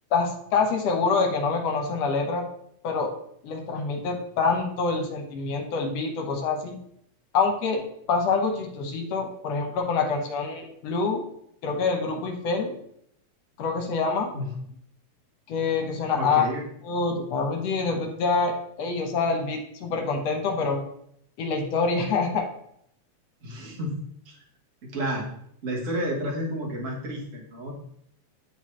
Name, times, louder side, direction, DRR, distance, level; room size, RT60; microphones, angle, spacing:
voice 1, 0.1-2.4 2.8-3.1 3.4-6.8 7.3-7.8 8.1-11.2 11.6-12.7 13.6-14.3 15.5-16.5 16.9-20.8 21.4-22.5, left 4 dB, 70° left, 2 dB, 2.0 m, -26 dB
voice 2, 16.2-16.6 23.4-24.0 24.2-24.4 24.8-25.3 25.6-27.7, equal, 35° right, -2 dB, 1.2 m, -31 dB
10.0 x 3.9 x 3.1 m, 0.71 s
omnidirectional pair, 3.3 m